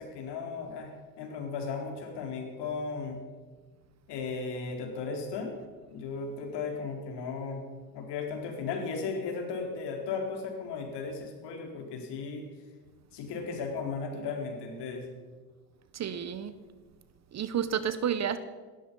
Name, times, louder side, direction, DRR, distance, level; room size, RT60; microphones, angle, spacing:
voice 1, 0.0-3.2 4.1-5.6 5.9-7.6 7.9-12.5 13.1-15.1, left 4 dB, 55° left, 3 dB, 4.3 m, -36 dB
voice 2, 15.9-16.5 17.3-18.4, right 8 dB, 35° right, 13 dB, 1.0 m, -30 dB
17.5 x 13.0 x 5.5 m, 1.4 s
hypercardioid pair, 90°, 49 cm